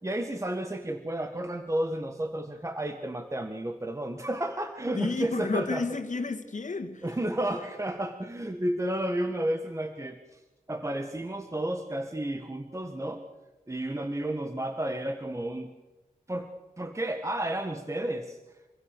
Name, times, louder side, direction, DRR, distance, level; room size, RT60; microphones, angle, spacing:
voice 1, 0.0-5.9 7.0-10.4 10.7-13.3 13.7-15.7 16.3-16.5 16.8-18.4, right 1 dB, 20° right, 1.5 m, -32 dB
voice 2, 4.9-7.0, left 3 dB, 60° left, 2.4 m, -31 dB
26.5 x 23.5 x 6.7 m
wide cardioid pair, 75°, 14 cm